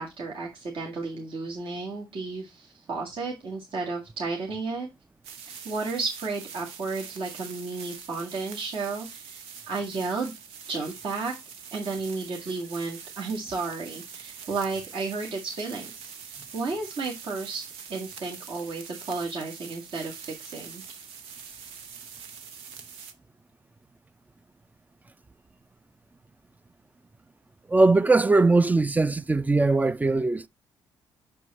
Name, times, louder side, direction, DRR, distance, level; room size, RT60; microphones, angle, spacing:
voice 1, 0.0-4.9 5.6-10.3 10.7-11.3 11.7-16.1 16.5-17.6 17.9-20.8, right 4 dB, 60° right, 1.8 m, -33 dB
sound 1, 5.2-23.1, right 7 dB, 85° right, 0.8 m, -44 dB
voice 2, 27.7-30.5, right 3 dB, 15° right, 0.4 m, -20 dB
6.2 x 4.5 x 4.1 m
supercardioid pair, 60°, 10 cm